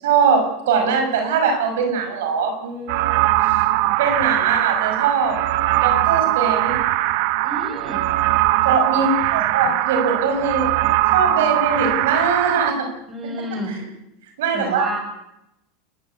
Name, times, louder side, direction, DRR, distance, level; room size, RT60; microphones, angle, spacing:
voice 1, 0.0-3.2 4.0-5.4 5.8-6.8 8.6-10.7 11.1-12.9 13.7-13.8 14.4-14.9, right 5 dB, 85° right, 5 dB, 5.8 m, -21 dB
sound 1, 2.9-12.7, right 16 dB, 60° right, 1.2 m, -20 dB
voice 2, 7.4-8.1 13.1-13.7 14.5-15.0, right 1 dB, 25° right, 5 dB, 6.0 m, -30 dB
28.0 x 13.5 x 8.3 m, 0.88 s
supercardioid pair, 140°, 0 cm